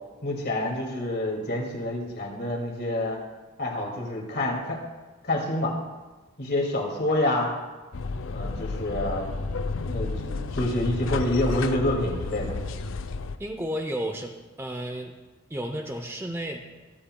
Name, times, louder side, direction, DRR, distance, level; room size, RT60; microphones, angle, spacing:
voice 1, 0.2-3.2 3.6-4.8 5.2-5.7 6.4-7.5 8.3-9.5 9.8-12.5, left 1 dB, 50° left, 0 dB, 2.2 m, -27 dB
sound 1, 7.9-13.4, left 3 dB, 70° left, 0.5 m, -32 dB
voice 2, 13.4-15.1 15.5-16.6, equal, 10° right, 4 dB, 0.6 m, -32 dB
24.0 x 8.6 x 2.2 m, 1.2 s
head